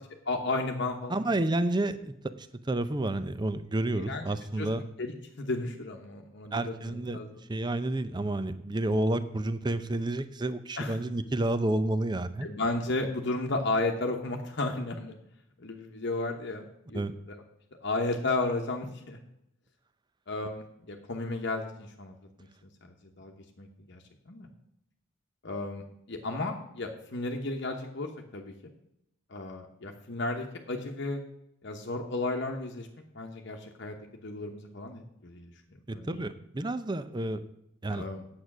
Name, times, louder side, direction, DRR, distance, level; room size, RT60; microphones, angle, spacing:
voice 1, 0.3-1.4 4.0-4.3 4.6-4.7 5.0-7.4 10.8-11.0 12.4-15.2 15.6-17.0 17.3-17.4 17.8-19.2 20.3-22.1 22.8-23.3 23.6-24.5 25.4-25.8 26.1-28.5 29.3-31.2 31.6-32.9 33.1-35.5 35.9-36.3 37.9-38.2, left 2 dB, 55° left, 2 dB, 1.0 m, -33 dB
voice 2, 1.1-4.8 6.5-7.2 7.5-12.5 16.9-17.1 35.9-37.4 37.8-38.1, right 1 dB, 20° right, 12 dB, 0.5 m, -30 dB
8.7 x 8.0 x 6.0 m, 0.81 s
head